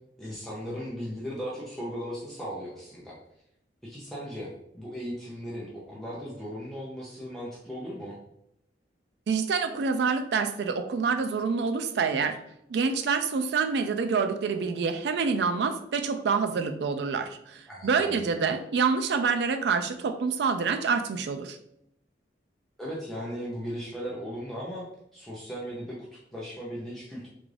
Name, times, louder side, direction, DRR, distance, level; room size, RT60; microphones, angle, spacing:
voice 1, 0.2-3.2 3.8-8.2 17.7-18.4 22.8-24.9 25.1-27.3, equal, ahead, -6 dB, 0.5 m, -37 dB
voice 2, 9.3-12.4 12.7-21.6, right 5 dB, 70° right, 8 dB, 0.3 m, -27 dB
3.7 x 2.4 x 3.2 m, 0.76 s
head